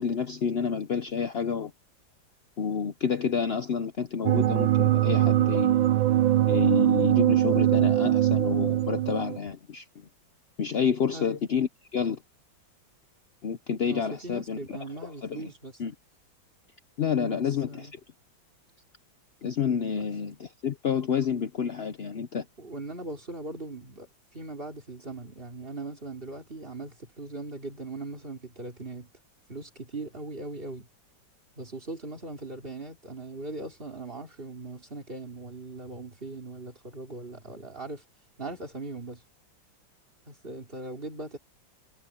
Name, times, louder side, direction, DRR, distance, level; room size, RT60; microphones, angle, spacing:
voice 1, 0.0-1.7 2.6-5.8 6.5-9.8 10.6-12.2 13.4-14.6 15.0-15.5 15.8-15.9 17.0-17.9 19.4-22.5, left 6 dB, 75° left, 0.5 m, -29 dB
sound 1, 4.3-9.4, right 13 dB, 85° right, 1.4 m, -22 dB
voice 2, 11.1-11.4 13.9-15.7 17.2-17.9 19.9-20.0 22.6-29.1 29.5-30.9 31.6-38.0 38.4-39.2 40.3-41.4, right 2 dB, 30° right, 3.5 m, -39 dB
omnidirectional pair, 2.1 m